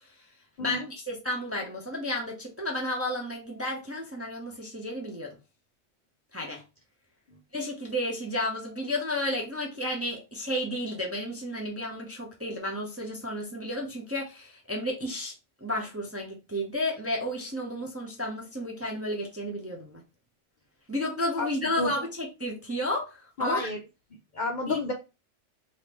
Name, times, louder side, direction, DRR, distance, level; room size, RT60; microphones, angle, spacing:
voice 1, 0.6-5.4 6.3-6.6 7.5-15.3 15.6-20.0 20.9-23.7 24.7-24.8, left 1 dB, 20° right, 0.5 m, -32 dB
voice 2, 23.4-23.8 24.3-24.9, left 2 dB, 60° left, 0.5 m, -30 dB
3.5 x 2.7 x 2.9 m
omnidirectional pair, 1.3 m